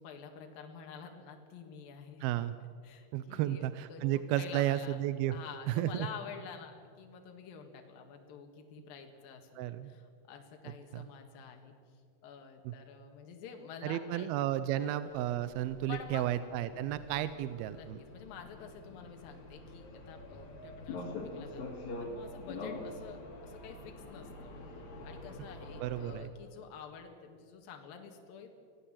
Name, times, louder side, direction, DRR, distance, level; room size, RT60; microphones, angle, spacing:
voice 1, 0.0-2.3 2.8-5.0 5.2-11.7 12.2-14.3 14.8-14.9 15.9-16.3 17.7-24.5 25.0-28.5, left 6 dB, 70° left, 4 dB, 3.4 m, -49 dB
voice 2, 2.2-2.6 3.1-5.4 5.7-6.1 9.6-9.9 10.9-11.1 12.7-12.8 13.8-18.0 25.8-26.3, right 13 dB, 80° right, 13 dB, 2.5 m, -33 dB
sound 1, 15.1-26.1, left 2 dB, 50° left, 3.9 m, -45 dB
25.0 x 17.0 x 7.5 m, 2.3 s
omnidirectional pair, 4.4 m